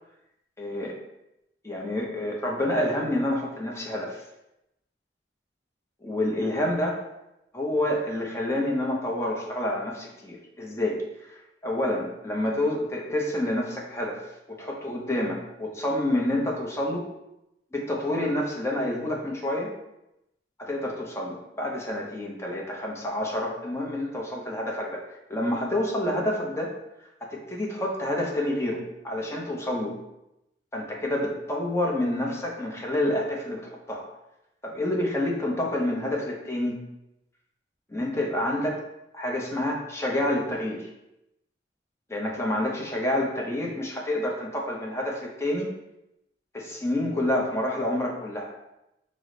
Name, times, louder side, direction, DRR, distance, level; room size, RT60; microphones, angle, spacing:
voice 1, 0.6-1.0 1.6-4.2 6.0-7.0 7.5-11.4 11.6-14.2 14.5-17.0 17.7-19.7 20.6-25.0 25.3-26.7 27.3-29.9 30.7-34.1 34.6-36.8 37.9-38.8 39.1-40.9 42.1-45.7 46.5-48.5, left 1 dB, 15° left, -2 dB, 0.7 m, -28 dB
4.8 x 2.0 x 3.8 m, 0.87 s
head